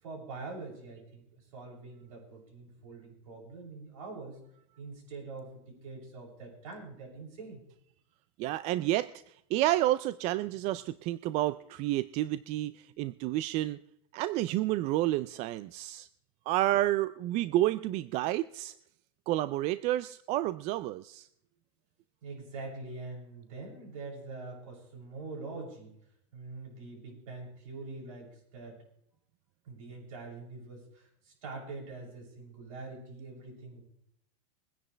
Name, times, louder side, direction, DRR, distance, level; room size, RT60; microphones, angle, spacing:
voice 1, 0.0-4.4 4.8-7.6 22.2-25.9 26.3-28.8 29.6-33.8, right 3 dB, 80° right, -1 dB, 7.1 m, -44 dB
voice 2, 8.4-13.8 14.1-16.1 16.5-18.7 19.3-21.3, right 15 dB, 40° right, 15 dB, 0.4 m, -30 dB
23.0 x 10.0 x 3.3 m, 0.72 s
supercardioid pair, 135°, 18 cm